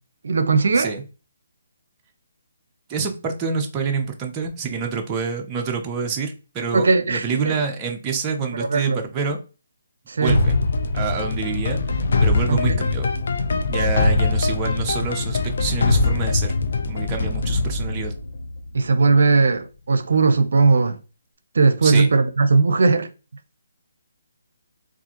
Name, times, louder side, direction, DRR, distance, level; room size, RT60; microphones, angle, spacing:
voice 1, 0.2-0.9 6.7-7.5 8.6-9.0 10.1-10.4 12.5-12.8 18.7-21.0 21.5-23.1, right 4 dB, 70° right, 0.5 m, -18 dB
voice 2, 2.9-9.4 10.2-10.6 10.9-11.8 12.2-13.1 13.7-16.5 16.9-18.1 21.8-22.1, right 5 dB, 15° right, 0.5 m, -27 dB
sound 1, 10.3-19.1, left 3 dB, 60° left, 0.4 m, -22 dB
3.6 x 2.4 x 2.9 m
hypercardioid pair, 165°, 0 cm